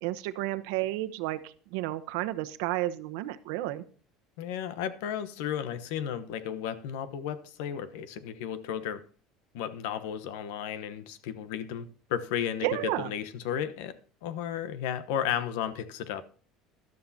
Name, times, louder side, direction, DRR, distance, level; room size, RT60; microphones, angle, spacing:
voice 1, 0.0-3.8 12.6-13.1, right 16 dB, 85° right, 0.9 m, -32 dB
voice 2, 4.4-9.0 9.5-12.7 13.0-13.9 14.2-16.2, left 9 dB, 85° left, 1.0 m, -34 dB
13.0 x 12.0 x 2.8 m
cardioid pair, 150°, 0 cm